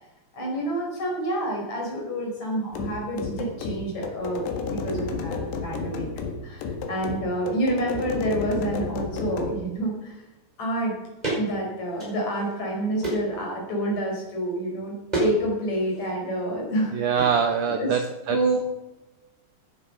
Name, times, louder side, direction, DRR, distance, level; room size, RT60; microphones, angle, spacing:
voice 1, 0.3-6.1 6.4-10.2 10.6-10.9 11.3-16.9 17.7-18.0 18.3-18.6, right 1 dB, 45° left, -1 dB, 5.9 m, -28 dB
sound 1, 2.7-9.6, left 5 dB, 80° left, 3.7 m, -32 dB
sound 2, 11.2-11.4 11.9-12.6 13.0-13.4 15.1-15.4 15.6-16.1 17.2-17.3, right 2 dB, 10° right, 5.1 m, -28 dB
voice 2, 16.9-18.4, right 7 dB, 80° right, 6 dB, 1.8 m, -24 dB
15.5 x 10.0 x 5.6 m, 1.0 s
omnidirectional pair, 4.7 m